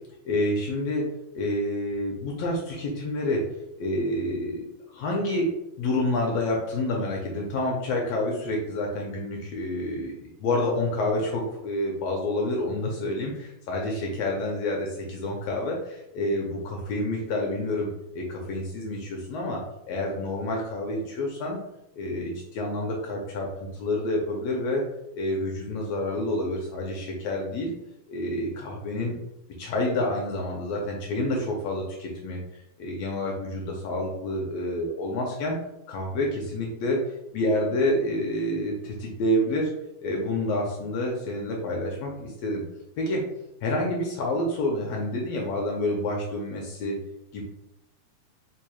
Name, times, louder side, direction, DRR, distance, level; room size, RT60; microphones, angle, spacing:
voice 1, 0.2-1.0 1.3-3.4 3.8-5.5 5.8-17.9 18.1-19.6 19.9-21.6 21.9-24.8 25.1-27.7 28.1-29.1 29.6-35.6 35.9-37.0 37.3-39.7 40.0-42.6 43.0-43.2 43.6-47.0 47.3-47.4, left 1 dB, 75° left, -1 dB, 1.6 m, -28 dB
4.8 x 2.9 x 2.2 m, 0.84 s
omnidirectional pair, 3.3 m